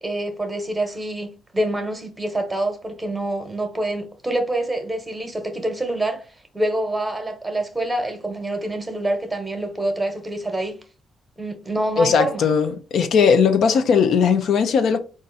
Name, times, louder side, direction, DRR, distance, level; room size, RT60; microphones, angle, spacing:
voice 1, 0.0-6.2 6.5-10.8 11.4-12.4, right 1 dB, 15° right, 1.0 m, -26 dB
voice 2, 12.0-15.0, left 6 dB, 70° left, 0.6 m, -18 dB
4.1 x 2.5 x 4.0 m
cardioid pair, 90°, 0 cm